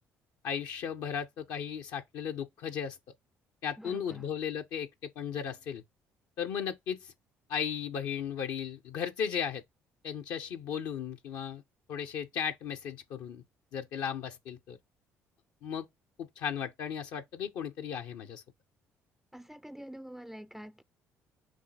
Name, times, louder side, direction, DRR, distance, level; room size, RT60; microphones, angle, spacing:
voice 1, 0.4-3.0 3.6-5.8 6.4-7.1 7.5-9.6 10.0-11.6 11.9-13.4 13.7-14.8 15.6-15.9 16.2-18.4, left 8 dB, 70° left, 0.6 m, -36 dB
voice 2, 3.8-4.3 19.3-20.8, equal, 5° right, 0.3 m, -46 dB
6.1 x 2.2 x 4.0 m
hypercardioid pair, 60°, 7 cm